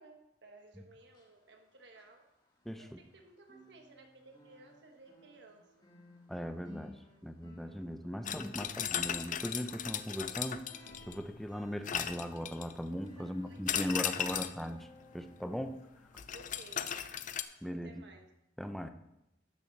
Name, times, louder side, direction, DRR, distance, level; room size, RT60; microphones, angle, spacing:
voice 1, 0.0-2.3 2.8-5.7 13.2-14.5 16.3-17.0 17.7-18.3, right 2 dB, 65° right, 3 dB, 1.4 m, -56 dB
sound 1, 1.0-3.2 3.4-16.6 16.9-17.1 17.6-17.7, left 1 dB, 25° left, 1.7 m, -58 dB
voice 2, 2.7-3.0 6.3-7.0 7.2-10.6 11.1-14.8 15.1-15.8 17.6-18.0 18.6-18.9, equal, ahead, 7 dB, 0.6 m, -39 dB
sound 2, 8.3-11.3 11.9-12.8 13.7-14.7 16.2-17.4, left 9 dB, 45° left, 0.5 m, -36 dB
12.5 x 6.9 x 4.1 m, 0.86 s
head